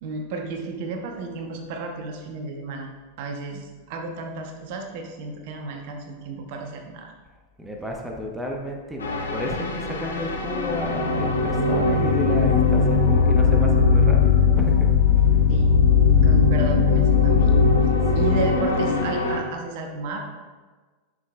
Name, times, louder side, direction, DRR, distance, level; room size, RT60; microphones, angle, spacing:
voice 1, 0.0-2.9 3.2-7.1 15.5-15.8 16.2-17.6 18.1-20.2, right 3 dB, 50° right, 3 dB, 0.9 m, -33 dB
voice 2, 7.6-15.2 18.1-18.2, left 1 dB, 5° right, 0 dB, 0.9 m, -32 dB
sound 1, 9.0-19.4, left 5 dB, 70° left, 0.8 m, -19 dB
9.4 x 6.5 x 2.3 m, 1.3 s
figure-of-eight pair, 90°, 0 cm